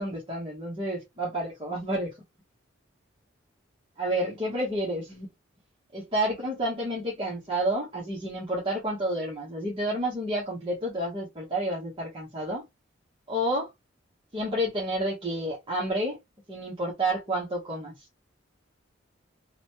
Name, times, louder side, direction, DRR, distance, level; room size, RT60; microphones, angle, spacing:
voice 1, 0.0-2.1 4.0-5.3 5.9-12.6 13.3-13.7 14.3-16.2 16.5-18.0, right 1 dB, 30° right, 0.9 m, -30 dB
3.0 x 2.1 x 2.8 m
head